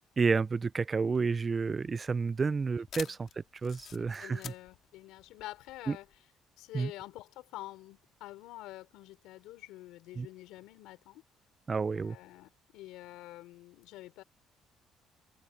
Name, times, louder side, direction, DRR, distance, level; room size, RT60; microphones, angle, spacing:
voice 1, 0.2-4.5 5.9-6.0 6.7-6.9 10.2-10.3 11.7-12.2, right 4 dB, 30° right, 0.3 m, -30 dB
sound 1, 1.1-6.2, left 9 dB, 60° left, 2.1 m, -49 dB
voice 2, 4.0-6.1 6.6-11.2 11.9-14.2, left 17 dB, 90° left, 4.9 m, -47 dB
cardioid pair, 100°, 0 cm